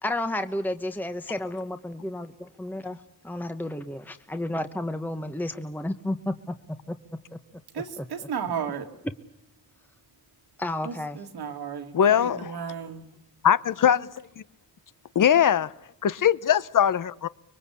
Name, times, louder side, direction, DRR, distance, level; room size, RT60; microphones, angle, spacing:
voice 1, 0.0-6.5 6.9-7.0 7.3-7.4 8.0-8.1 10.6-11.2, left 1 dB, 5° left, 1.0 m, -32 dB
voice 2, 7.7-8.9 10.8-13.1, right 7 dB, 85° right, 2.6 m, -34 dB
voice 3, 11.9-12.5 13.4-14.1 14.4-14.5 15.1-15.7 16.0-17.3, left 9 dB, 55° left, 0.9 m, -21 dB
25.5 x 22.5 x 8.5 m
cardioid pair, 80°, 38 cm